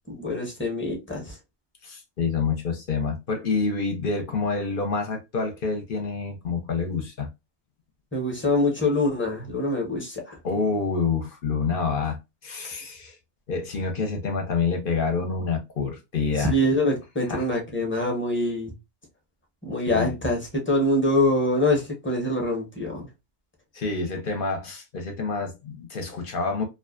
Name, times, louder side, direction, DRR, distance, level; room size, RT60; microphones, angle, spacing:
voice 1, 0.1-1.4 8.1-10.4 16.4-18.7 19.6-23.1, left 1 dB, 15° left, 0.7 m, -24 dB
voice 2, 1.8-7.3 10.4-12.2 12.4-13.2 13.5-16.5 17.3-17.5 19.9-20.1 23.7-26.6, left 4 dB, 55° left, 0.8 m, -27 dB
2.4 x 2.3 x 2.3 m
omnidirectional pair, 1.1 m